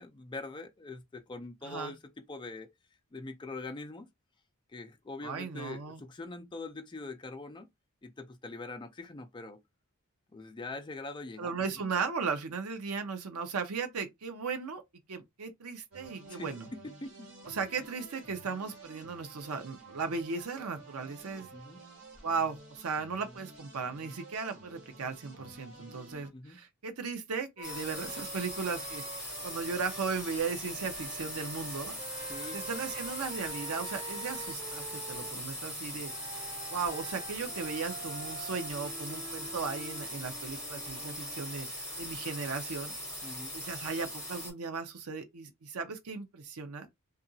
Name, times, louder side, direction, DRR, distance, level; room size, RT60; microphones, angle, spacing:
voice 1, 0.0-2.0 2.3-2.7 3.1-4.1 4.7-7.7 8.0-9.6 10.3-11.7 16.3-16.5 17.0-17.3 21.5-21.8 26.3-26.6 32.3-32.6 43.2-43.5, left 3 dB, 20° left, 0.4 m, -43 dB
voice 2, 1.6-1.9 5.2-6.0 11.4-14.8 15.1-16.7 17.5-21.5 22.2-41.7 42.0-46.9, right 5 dB, 85° right, 0.6 m, -37 dB
sound 1, 15.9-26.3, right 2 dB, 60° right, 1.4 m, -52 dB
sound 2, 27.6-44.5, equal, 5° right, 1.6 m, -40 dB
Wind instrument woodwind instrument, 27.6-30.1 30.7-35.4 36.0-41.4, right 4 dB, 35° right, 1.5 m, -47 dB
2.8 x 2.4 x 2.6 m
head